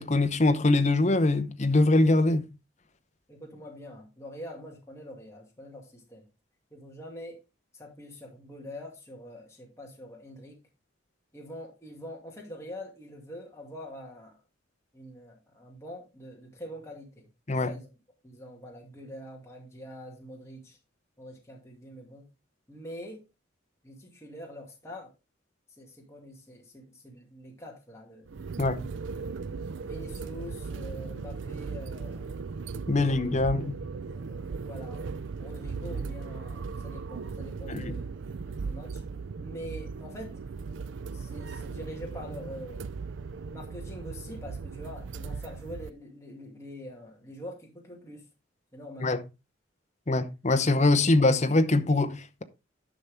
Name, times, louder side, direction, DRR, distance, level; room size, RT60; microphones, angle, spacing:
voice 1, 0.0-2.5 17.5-17.7 28.6-28.8 32.9-33.8 37.7-37.9 49.0-49.2 50.1-52.4, left 2 dB, 35° left, 0.8 m, -23 dB
voice 2, 3.3-6.2 6.7-7.4 7.7-10.6 11.3-14.3 14.9-17.3 17.6-17.9 18.2-20.8 21.2-22.3 22.7-23.2 23.8-25.1 25.7-28.3 29.4-32.3 32.9-33.3 33.7-35.1 35.4-38.1 38.4-39.0 39.4-40.4 41.1-42.8 43.5-48.2 48.7-49.2, equal, 15° left, 2.3 m, -44 dB
sound 1, 28.3-45.9, right 4 dB, 65° right, 0.4 m, -37 dB
11.0 x 5.8 x 3.5 m
head